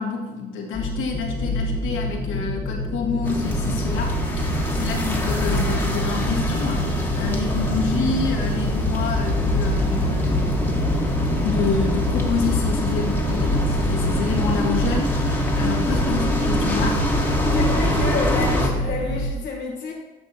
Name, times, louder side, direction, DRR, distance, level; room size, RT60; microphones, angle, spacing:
voice 1, 0.0-10.6 11.4-17.6, left 4 dB, 85° left, -1 dB, 1.5 m, -28 dB
sound 1, 0.7-19.3, equal, 30° left, 0.9 m, -27 dB
sound 2, 3.2-18.7, left 1 dB, 10° left, 1.3 m, -24 dB
voice 2, 17.5-19.9, left 4 dB, 60° left, -1 dB, 1.0 m, -29 dB
9.6 x 6.2 x 2.8 m, 1.2 s
cardioid pair, 90°, 20 cm